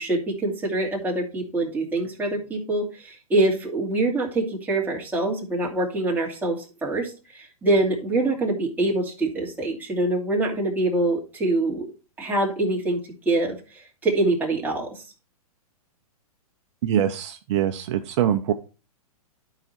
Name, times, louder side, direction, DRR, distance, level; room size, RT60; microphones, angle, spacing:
voice 1, 0.0-11.9 12.2-13.0 13.3-13.6 14.0-15.0, right 2 dB, 10° right, -3 dB, 2.5 m, -24 dB
voice 2, 16.8-18.5, right 10 dB, 50° right, 7 dB, 0.7 m, -23 dB
11.5 x 5.0 x 4.4 m, 0.32 s
hypercardioid pair, 130°, 19 cm